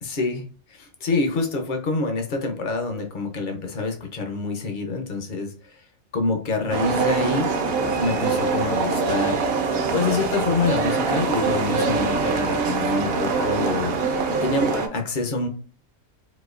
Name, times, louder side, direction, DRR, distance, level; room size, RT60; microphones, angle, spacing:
voice 1, 0.0-5.8 6.1-7.5 8.0-9.4 9.9-13.9 14.4-15.5, left 3 dB, 50° left, 4 dB, 0.6 m, -26 dB
sound 1, 6.7-14.9, right 4 dB, 60° right, 0.7 m, -23 dB
4.2 x 2.6 x 2.4 m, 0.40 s
omnidirectional pair, 1.4 m